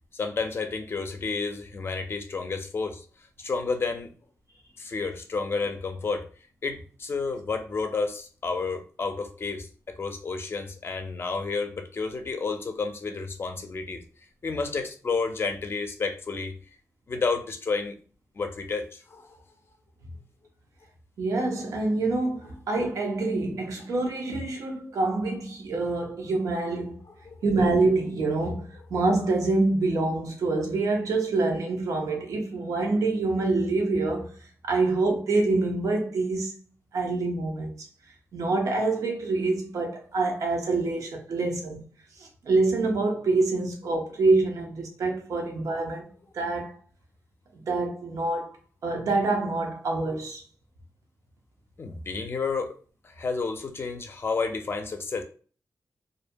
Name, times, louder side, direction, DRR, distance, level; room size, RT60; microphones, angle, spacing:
voice 1, 0.1-3.0 3.4-4.1 4.8-6.3 6.6-9.7 10.0-14.0 14.4-16.5 17.1-17.9 18.4-19.4 27.2-27.4 51.8-52.8 53.0-55.2, left 4 dB, 45° left, 0.5 m, -30 dB
voice 2, 21.2-27.0 27.4-34.3 34.6-36.5 36.9-37.7 38.3-41.8 42.2-46.1 46.3-46.8 47.5-48.5 48.8-50.4, right 3 dB, 85° right, 0.6 m, -26 dB
2.6 x 2.1 x 2.6 m
cardioid pair, 80°, 5 cm